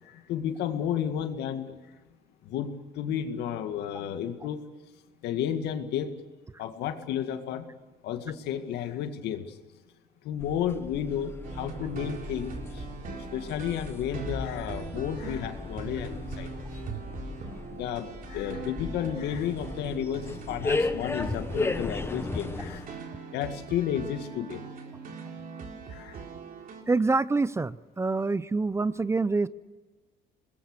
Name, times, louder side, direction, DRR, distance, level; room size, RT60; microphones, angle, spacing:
voice 1, 0.0-1.7 2.4-4.6 5.2-6.2 6.6-7.7 8.0-9.5 10.2-16.5 17.7-22.9 23.3-24.6 25.9-26.2, left 9 dB, 80° left, 7 dB, 2.1 m, -32 dB
sound 1, 10.4-22.9, left 3 dB, 15° left, 1.1 m, -36 dB
sound 2, 11.4-26.8, right 5 dB, 55° right, 3.7 m, -41 dB
voice 2, 26.9-29.5, right 3 dB, 15° right, 17 dB, 0.6 m, -26 dB
25.0 x 20.5 x 6.7 m, 1.3 s
cardioid pair, 110°, 17 cm